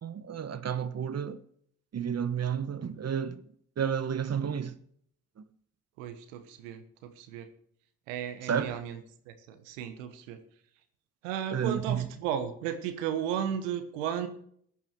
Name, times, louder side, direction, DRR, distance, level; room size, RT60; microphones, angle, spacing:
voice 1, 0.0-1.4 1.9-3.4 3.8-4.8 8.5-8.8 11.5-12.1, right 8 dB, 45° right, 1.1 m, -31 dB
voice 2, 6.0-7.5 8.1-10.4 11.2-14.3, right 9 dB, 85° right, 1.2 m, -35 dB
14.0 x 10.5 x 4.6 m
hypercardioid pair, 50°, 37 cm